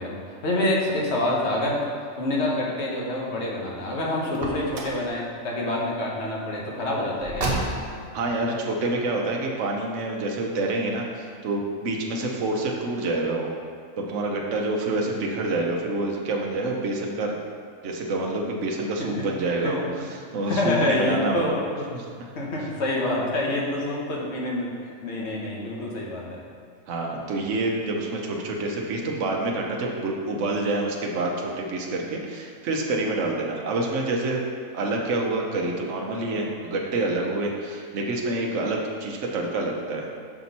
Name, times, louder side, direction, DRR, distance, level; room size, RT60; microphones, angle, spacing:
voice 1, 0.0-1.8 2.2-7.6 19.0-19.3 19.6-19.8 20.5-21.9 22.3-26.4, left 1 dB, 55° left, -3 dB, 1.3 m, -27 dB
Car, 4.3-5.1 7.2-8.1, right 2 dB, 50° right, 1.1 m, -29 dB
voice 2, 8.1-13.5 14.0-17.4 17.8-19.8 20.3-21.6 21.9-22.0 26.9-34.4 34.7-40.1, right 2 dB, 65° right, 0 dB, 1.1 m, -27 dB
6.0 x 5.9 x 4.2 m, 2.1 s
omnidirectional pair, 1.4 m